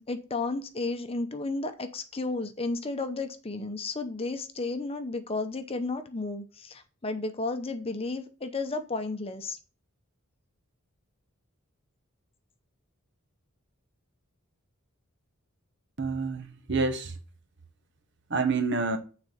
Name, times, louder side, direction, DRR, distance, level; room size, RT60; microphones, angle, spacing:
voice 1, 0.0-9.6, left 3 dB, 25° left, 0.7 m, -33 dB
voice 2, 16.0-17.1 18.3-19.0, right 4 dB, 55° right, 1.2 m, -28 dB
8.8 x 4.2 x 5.1 m
head